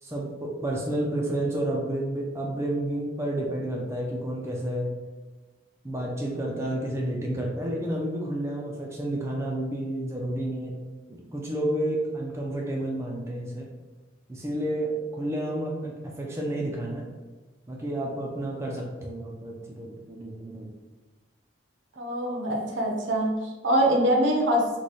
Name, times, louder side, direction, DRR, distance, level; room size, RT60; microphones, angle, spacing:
voice 1, 0.0-4.9 5.8-10.8 11.1-13.7 14.3-17.1 17.7-20.7, right 1 dB, 15° right, -2 dB, 0.3 m, -30 dB
voice 2, 22.0-24.7, right 1 dB, 75° right, 1 dB, 0.7 m, -24 dB
3.1 x 2.2 x 3.9 m, 1.2 s
head